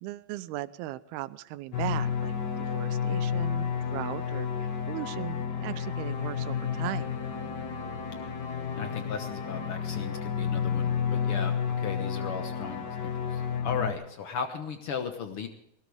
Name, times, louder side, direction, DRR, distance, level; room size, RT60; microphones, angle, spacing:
voice 1, 0.0-7.1, right 15 dB, 90° right, 15 dB, 2.7 m, -38 dB
sound 1, 1.7-13.9, left 7 dB, 60° left, 1.1 m, -31 dB
voice 2, 8.8-15.5, left 6 dB, 90° left, 6 dB, 1.2 m, -36 dB
20.5 x 17.5 x 3.5 m, 0.79 s
omnidirectional pair, 4.3 m